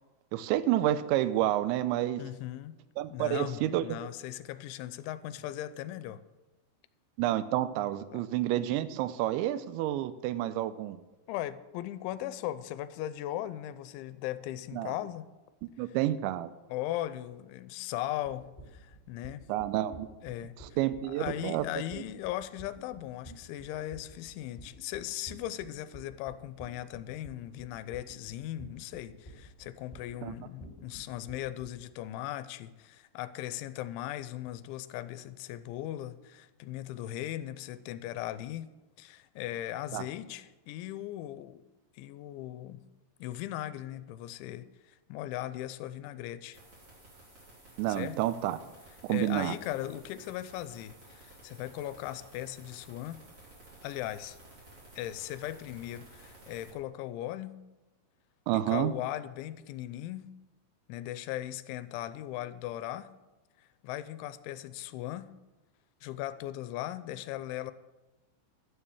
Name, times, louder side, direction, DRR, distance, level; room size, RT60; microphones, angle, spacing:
voice 1, 0.3-2.2 3.0-3.9 7.2-11.0 14.7-14.9 15.8-16.5 19.5-20.1 20.6-21.6 30.2-30.3 39.9-40.1 47.8-48.6 49.0-49.6 58.5-58.9, right 13 dB, 80° right, 14 dB, 2.7 m, -29 dB
voice 2, 2.2-2.8 3.1-6.2 8.1-8.3 11.3-15.3 16.7-19.5 20.2-20.5 21.0-38.7 39.0-41.6 42.0-42.8 43.2-46.6 47.9-48.2 49.1-53.2 53.8-54.4 55.0-57.6 58.5-60.3 60.9-63.1 63.8-65.3 66.0-67.7, left 13 dB, 85° left, 13 dB, 2.9 m, -38 dB
sound 1, 18.2-31.8, right 1 dB, 15° left, 1.9 m, -50 dB
sound 2, 46.5-56.7, right 2 dB, 30° right, 4.1 m, -54 dB
12.0 x 7.4 x 7.0 m, 1.1 s
omnidirectional pair, 5.6 m